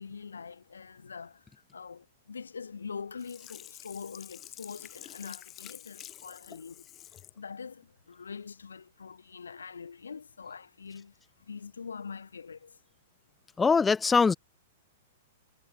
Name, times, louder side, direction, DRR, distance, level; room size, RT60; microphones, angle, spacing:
voice 1, 0.0-6.9 7.4-12.8, left 5 dB, 90° left, 7.7 m, -44 dB
Sink (filling or washing), 3.2-7.4 7.8-7.9, left 12 dB, 30° left, 1.8 m, -48 dB
voice 2, 13.6-14.3, left 5 dB, 15° left, 0.5 m, -22 dB
hypercardioid pair, 115°, 0 cm